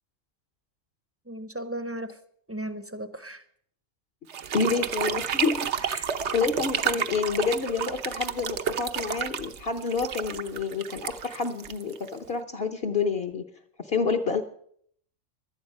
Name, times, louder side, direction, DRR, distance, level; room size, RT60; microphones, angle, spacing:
voice 1, 1.3-2.2 2.5-3.4 5.8-6.1, right 1 dB, 15° right, 11 dB, 0.7 m, -36 dB
sound 1, 4.3-12.3, right 8 dB, 65° right, 1.1 m, -31 dB
voice 2, 4.5-5.7 6.3-13.4 13.8-14.4, left 5 dB, 50° left, 5 dB, 1.0 m, -28 dB
17.0 x 11.5 x 5.4 m, 0.64 s
omnidirectional pair, 1.3 m